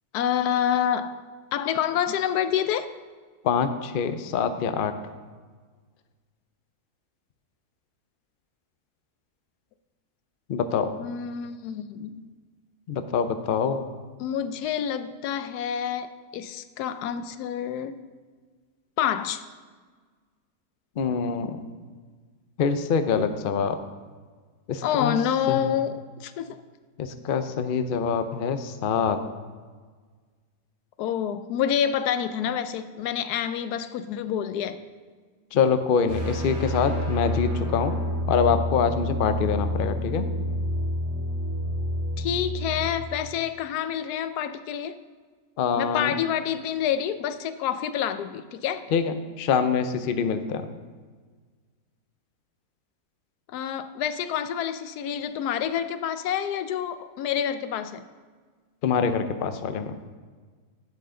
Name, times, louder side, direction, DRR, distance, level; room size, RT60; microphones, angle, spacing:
voice 1, 0.1-1.2 1.5-2.9 11.0-12.2 14.2-18.0 19.0-19.4 24.8-26.6 31.0-34.8 42.2-45.0 45.8-48.9 53.5-58.1, left 9 dB, 85° left, 12 dB, 1.1 m, -28 dB
voice 2, 3.4-5.0 10.5-10.9 12.9-13.9 21.0-21.6 22.6-23.8 24.7-25.2 25.5-25.6 27.0-29.2 35.5-38.0 38.3-40.3 45.6-46.1 48.9-50.7 58.8-60.0, left 6 dB, 65° left, 9 dB, 0.5 m, -25 dB
sound 1, 36.1-42.9, equal, 65° right, 2.7 m, -28 dB
10.5 x 7.9 x 3.8 m, 1.5 s
omnidirectional pair, 1.6 m